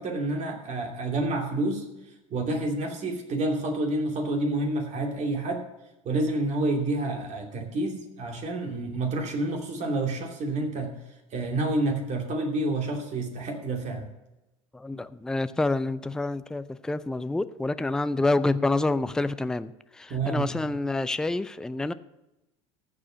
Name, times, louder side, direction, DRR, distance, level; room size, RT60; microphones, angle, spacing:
voice 1, 0.0-1.9 2.3-5.7 6.0-10.9 11.3-14.1 20.1-20.5, right 2 dB, 45° right, 2 dB, 2.6 m, -28 dB
voice 2, 14.7-21.9, left 2 dB, 5° left, 14 dB, 0.4 m, -28 dB
14.5 x 4.9 x 6.3 m, 0.94 s
hypercardioid pair, 75°, 17 cm